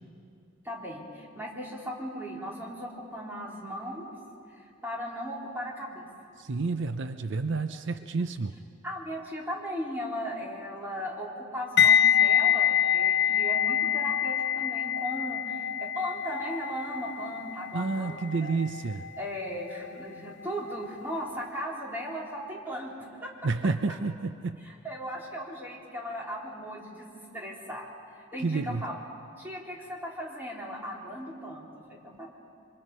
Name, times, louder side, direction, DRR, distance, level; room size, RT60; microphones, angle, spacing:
voice 1, 0.6-4.1 4.5-6.1 8.8-18.6 19.2-23.3 24.6-27.9 28.2-28.9 29.4-32.3, equal, 10° right, -3 dB, 3.8 m, -37 dB
voice 2, 6.4-8.6 17.7-19.1 23.4-24.6 28.4-28.8, right 3 dB, 65° right, 9 dB, 0.6 m, -30 dB
sound 1, 11.8-20.7 21.0-21.3, left 9 dB, 55° left, 0.6 m, -26 dB
27.0 x 25.0 x 5.6 m, 2.5 s
head